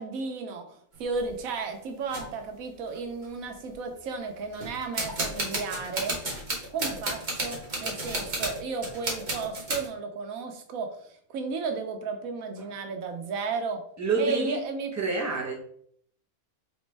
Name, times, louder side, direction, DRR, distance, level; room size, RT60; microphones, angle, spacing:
voice 1, 0.0-6.2 6.7-13.8 14.2-14.9, right 4 dB, 80° right, 5 dB, 1.2 m, -34 dB
sound 1, 0.9-1.3 2.1-2.3 2.9-3.0 3.2-3.7 4.5-9.9, right 1 dB, 35° right, 1.2 m, -32 dB
voice 2, 14.0-14.6 15.0-15.6, right 3 dB, 15° right, -1 dB, 0.8 m, -28 dB
4.2 x 3.1 x 3.3 m, 0.64 s
omnidirectional pair, 1.4 m